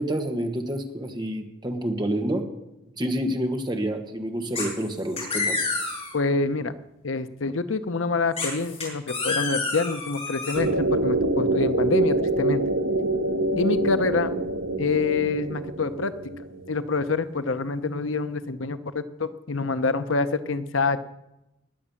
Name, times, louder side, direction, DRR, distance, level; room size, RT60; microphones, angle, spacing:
voice 1, 0.0-2.5 3.0-5.6, right 1 dB, 25° right, 5 dB, 1.6 m, -28 dB
sound 1, 4.6-4.9 5.2-6.1 8.4-10.6, left 3 dB, 35° left, 6.7 m, -29 dB
voice 2, 6.1-6.7 7.0-12.6 13.6-14.3 14.8-16.1 16.7-21.0, left 3 dB, 85° left, 11 dB, 0.8 m, -26 dB
sound 2, 10.5-17.0, right 2 dB, 80° right, 0.9 m, -25 dB
20.0 x 7.5 x 7.1 m, 0.91 s
head